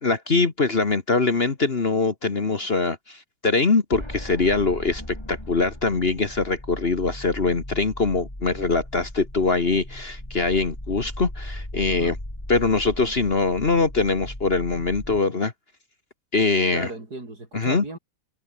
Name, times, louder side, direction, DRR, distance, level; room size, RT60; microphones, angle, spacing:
voice 1, 0.0-12.2 12.5-15.5 16.3-16.9 17.5-17.8, left 3 dB, 35° left, 1.7 m, -23 dB
sound 1, 3.9-15.2, left 1 dB, 15° left, 4.8 m, -37 dB
voice 2, 16.7-18.0, right 2 dB, 65° right, 6.3 m, -36 dB
omnidirectional pair, 1.8 m